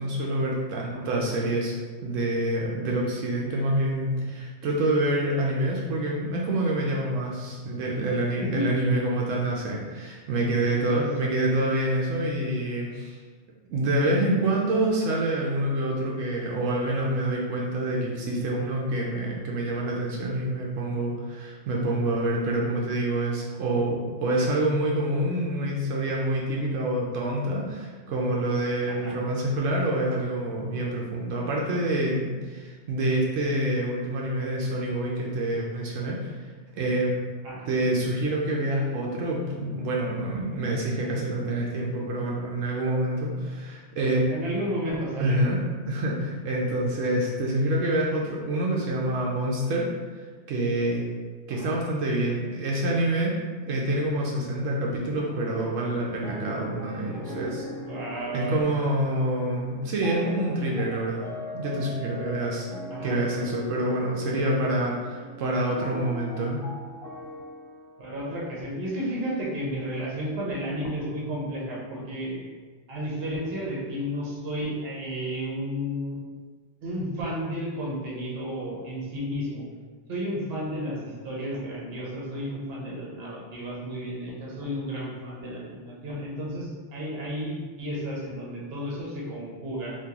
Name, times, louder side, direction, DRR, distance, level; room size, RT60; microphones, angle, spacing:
voice 1, 0.0-1.8 2.0-13.2 13.7-36.5 36.7-37.2 37.7-44.3 45.2-45.6 45.9-49.9 50.5-51.1 51.5-53.3 53.7-57.7 58.3-61.3 61.5-62.7 63.0-66.6, right 1 dB, 85° right, -2 dB, 0.9 m, -27 dB
voice 2, 10.9-11.3 28.9-29.1 37.4-37.7 44.3-45.5 51.5-51.7 57.7-58.6 62.9-63.2 68.0-72.4 72.9-76.2 76.8-79.6 80.1-90.0, equal, 55° right, -4 dB, 1.0 m, -32 dB
sound 1, 55.1-69.1, left 2 dB, 5° left, 0.5 m, -41 dB
Guitar, 56.2-63.4 63.9-67.6, left 3 dB, 75° left, 1.0 m, -46 dB
3.6 x 2.7 x 2.8 m, 1.5 s
omnidirectional pair, 1.3 m